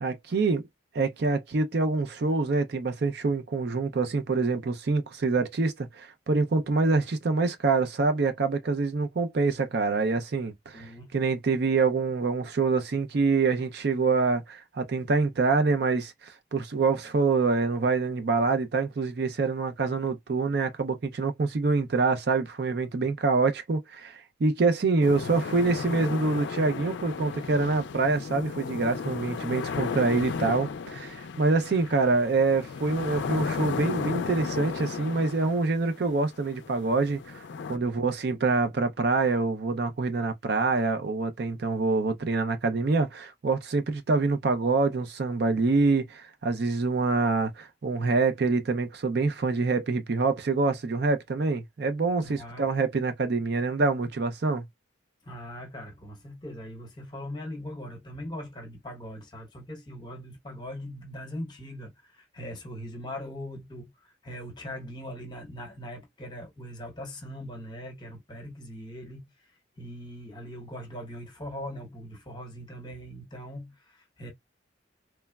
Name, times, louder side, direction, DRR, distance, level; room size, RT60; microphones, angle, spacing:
voice 1, 0.0-0.6 0.9-10.8 11.1-37.4 37.7-54.6, right 3 dB, 55° right, 0.4 m, -26 dB
voice 2, 10.7-11.1 37.8-38.1 52.2-52.7 55.2-74.3, equal, 25° left, 0.9 m, -41 dB
sound 1, 25.0-37.8, left 5 dB, 65° left, 0.4 m, -34 dB
3.2 x 2.0 x 2.2 m
head